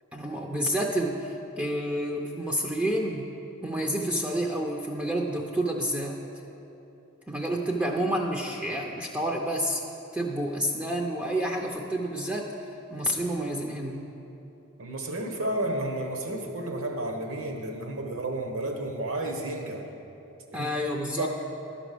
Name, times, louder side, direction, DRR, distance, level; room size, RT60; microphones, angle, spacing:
voice 1, 0.1-3.3 3.6-6.2 7.3-9.8 10.1-12.5 12.9-14.0 20.5-21.3, right 1 dB, 5° right, 0 dB, 0.5 m, -29 dB
voice 2, 14.8-19.9 20.5-20.7 21.1-21.3, right 1 dB, 70° right, 3 dB, 1.1 m, -31 dB
11.5 x 5.0 x 6.7 m, 2.9 s
head